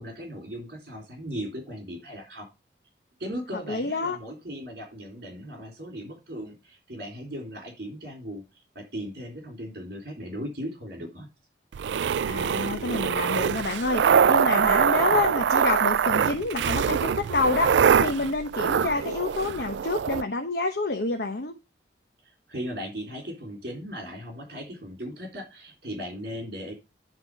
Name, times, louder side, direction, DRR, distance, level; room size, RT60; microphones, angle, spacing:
voice 1, 0.0-2.5 3.2-8.4 8.7-11.3 22.2-26.7, equal, 60° right, 3.5 m, -37 dB
voice 2, 3.7-4.2 12.3-21.5, left 3 dB, 65° left, 1.0 m, -28 dB
sound 1, 11.7-20.2, right 7 dB, 85° right, 0.4 m, -23 dB
10.0 x 4.1 x 5.3 m
head